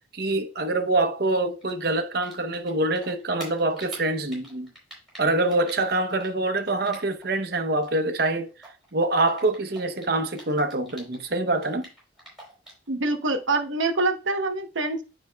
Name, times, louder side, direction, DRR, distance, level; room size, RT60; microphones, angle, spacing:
voice 1, 0.1-4.7 5.2-8.5 8.9-11.9, right 2 dB, 50° right, 0.7 m, -25 dB
Typing, 1.3-7.4 7.7-11.3 11.5-12.9, right 1 dB, ahead, 3.5 m, -45 dB
voice 2, 12.9-15.0, right 2 dB, 75° right, 1.0 m, -25 dB
9.5 x 4.9 x 2.2 m
head